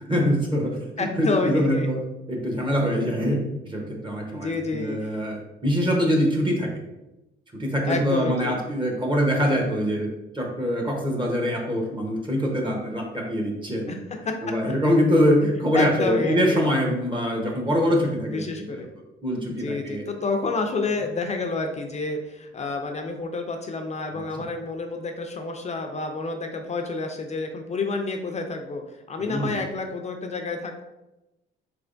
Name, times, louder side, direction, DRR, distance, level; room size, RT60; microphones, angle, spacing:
voice 1, 0.1-2.0 2.3-6.7 7.5-10.1 10.3-14.0 14.4-18.5 19.2-20.0 24.1-24.5 29.2-29.6, equal, 25° right, 0 dB, 0.8 m, -24 dB
voice 2, 1.0-1.9 4.3-5.2 7.9-8.5 13.9-14.3 15.7-16.7 18.3-18.9 19.5-28.8 29.1-30.8, left 3 dB, 35° left, 4 dB, 0.4 m, -29 dB
3.6 x 3.3 x 2.5 m, 0.96 s
cardioid pair, 90°, 20 cm